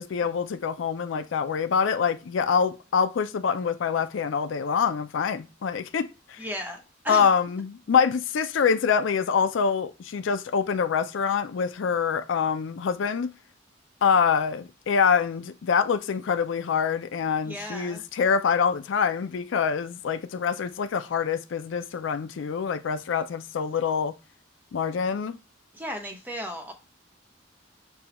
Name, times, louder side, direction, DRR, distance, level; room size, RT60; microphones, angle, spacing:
voice 1, 0.0-6.4 7.1-13.3 14.0-24.2 24.7-25.3, left 6 dB, 80° left, 0.4 m, -25 dB
voice 2, 6.4-7.3 17.4-18.0 25.7-26.7, equal, 10° right, 0.9 m, -35 dB
6.8 x 2.3 x 2.9 m
head